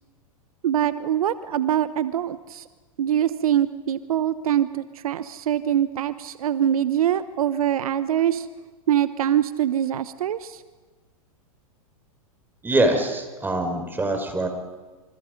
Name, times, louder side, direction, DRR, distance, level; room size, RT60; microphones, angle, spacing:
voice 1, 0.6-2.7 3.0-8.5 8.9-10.6, right 10 dB, 75° right, 13 dB, 1.0 m, -23 dB
voice 2, 12.6-14.5, right 2 dB, 10° right, 5 dB, 5.1 m, -23 dB
27.5 x 26.5 x 5.2 m, 1.3 s
hypercardioid pair, 110°, 19 cm